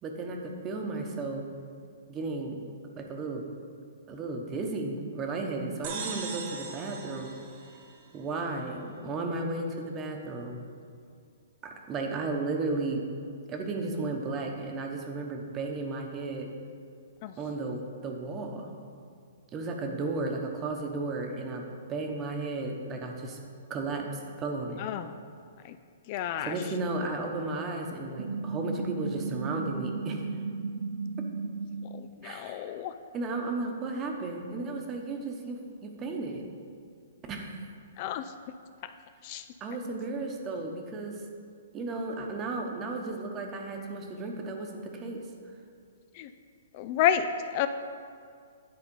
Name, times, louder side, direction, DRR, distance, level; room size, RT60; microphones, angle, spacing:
voice 1, 0.0-1.4 2.1-2.6 3.0-3.4 4.1-7.4 8.1-10.6 11.6-13.0 13.5-16.5 17.4-18.7 19.5-21.6 21.9-23.4 23.7-24.1 24.4-24.8 26.4-30.2 32.2-32.7 33.1-36.5 37.3-37.6 39.6-41.2 41.7-45.2, right 3 dB, 25° right, 2 dB, 1.0 m, -34 dB
sound 1, 5.8-8.4, right 5 dB, 45° right, 1.3 m, -40 dB
voice 2, 24.8-25.1 25.6-25.8 26.1-26.5 32.0-32.9 38.0-38.3 39.2-39.4 46.2-46.3 46.7-47.7, left 10 dB, 40° left, 10 dB, 0.3 m, -30 dB
sound 2, 28.2-32.1, right 4 dB, 75° right, 0.4 m, -35 dB
9.8 x 4.1 x 5.4 m, 2.3 s
hypercardioid pair, 140°, 0 cm